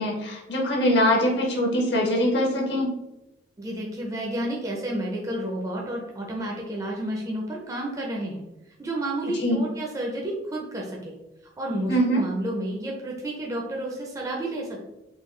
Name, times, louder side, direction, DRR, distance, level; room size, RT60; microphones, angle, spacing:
voice 1, 0.0-2.9 9.3-9.6 11.9-12.2, equal, 65° left, -1 dB, 0.7 m, -23 dB
voice 2, 3.6-8.4 8.8-11.1 11.6-14.8, right 1 dB, 20° right, -2 dB, 0.4 m, -31 dB
3.7 x 2.2 x 3.1 m, 0.94 s
head